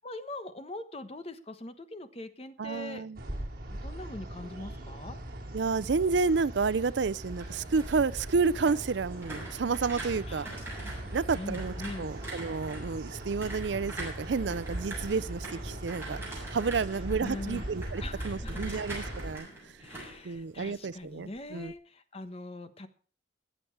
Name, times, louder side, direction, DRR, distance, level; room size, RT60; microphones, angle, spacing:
voice 1, 0.0-3.1 3.7-5.2 10.2-10.7 11.0-12.1 17.2-17.6 18.0-18.8 19.8-22.9, left 2 dB, 35° left, 1.2 m, -42 dB
voice 2, 2.6-3.2 5.5-10.5 11.1-19.5 20.2-21.7, right 4 dB, 75° right, 0.5 m, -30 dB
sound 1, 3.2-19.4, right 1 dB, 50° right, 3.3 m, -40 dB
sound 2, 7.1-21.0 21.3-21.7, right 2 dB, 15° right, 7.4 m, -44 dB
21.0 x 7.9 x 4.7 m
head